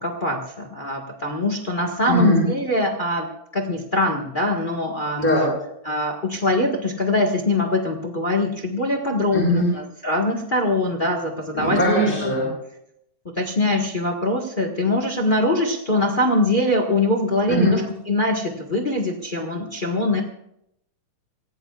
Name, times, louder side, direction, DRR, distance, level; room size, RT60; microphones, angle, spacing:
voice 1, 0.0-5.3 5.8-11.8 12.2-12.3 13.4-20.2, left 1 dB, 65° left, 2 dB, 0.5 m, -23 dB
voice 2, 2.0-2.4 5.2-5.5 9.3-9.7 11.5-12.4 17.5-17.8, equal, 15° left, -4 dB, 7.5 m, -20 dB
26.0 x 17.0 x 2.4 m, 0.77 s
omnidirectional pair, 3.7 m